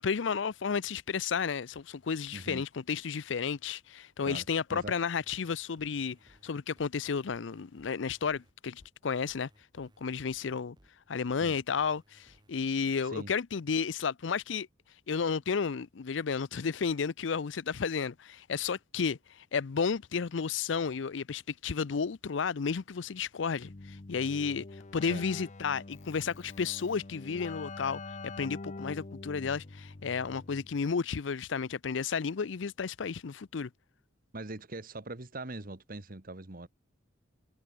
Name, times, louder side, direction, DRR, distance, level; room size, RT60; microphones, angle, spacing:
voice 1, 0.0-6.2 6.4-9.5 9.7-10.8 11.1-14.7 15.1-24.7 24.9-33.7, left 6 dB, 70° left, 0.5 m, -32 dB
voice 2, 2.3-2.6 4.2-4.4 4.7-4.9 11.4-11.6 13.0-13.3 25.1-25.2 34.3-36.7, right 2 dB, 45° right, 1.6 m, -42 dB
sound 1, 4.8-12.5, right 1 dB, 25° right, 1.8 m, -63 dB
Keyboard (musical), 23.6-30.9, left 3 dB, 40° left, 0.8 m, -45 dB
head